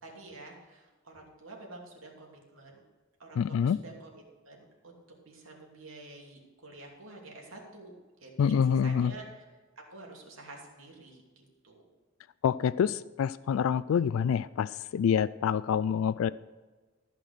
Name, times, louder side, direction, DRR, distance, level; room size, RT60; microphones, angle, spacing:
voice 1, 0.0-2.8 3.2-4.1 4.4-5.0 5.2-7.9 8.2-9.4 9.9-11.8, right 2 dB, 75° right, 0 dB, 2.8 m, -49 dB
voice 2, 3.4-3.8 8.4-9.1 12.4-16.3, left 7 dB, 80° left, 17 dB, 0.3 m, -27 dB
14.0 x 5.9 x 6.4 m, 1.3 s
head